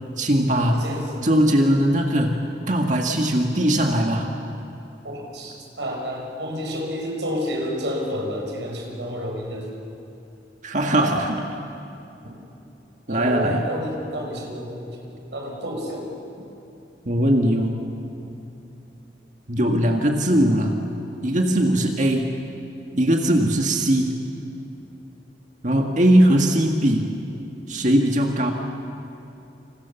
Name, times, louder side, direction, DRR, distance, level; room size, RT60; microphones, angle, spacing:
voice 1, 0.2-0.9 1.2-4.3 10.6-11.5 13.1-13.7 17.0-17.9 19.5-20.8 21.2-22.3 22.9-24.2 25.6-27.1 27.7-28.5, right 1 dB, 45° right, 2 dB, 1.8 m, -20 dB
voice 2, 0.7-1.1 5.0-9.7 13.1-16.1 19.8-20.0 26.4-26.6, equal, 80° right, 0 dB, 5.8 m, -30 dB
28.5 x 27.5 x 7.1 m, 2.8 s
head